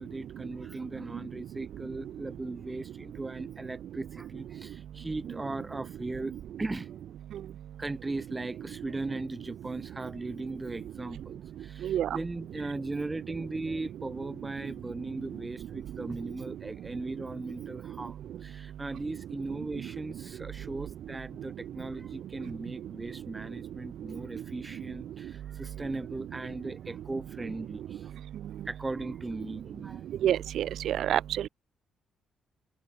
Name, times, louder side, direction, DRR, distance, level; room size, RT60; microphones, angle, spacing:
voice 1, 0.0-6.3 6.6-7.0 7.8-28.1 28.6-30.1, right 2 dB, 20° right, 6.6 m, -38 dB
voice 2, 30.2-31.5, right 11 dB, 70° right, 0.6 m, -27 dB
cardioid pair, 90°, 0 cm